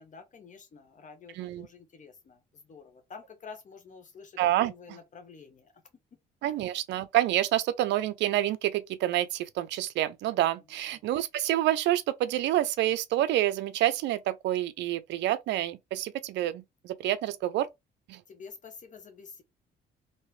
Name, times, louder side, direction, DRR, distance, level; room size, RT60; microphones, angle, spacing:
voice 1, 0.0-5.7 6.5-6.6 10.9-11.0 18.3-19.4, left 5 dB, 45° left, 1.0 m, -49 dB
voice 2, 4.4-5.0 6.4-17.7 18.1-18.2, right 14 dB, 75° right, 0.5 m, -28 dB
3.0 x 2.8 x 3.1 m
supercardioid pair, 75°, 19 cm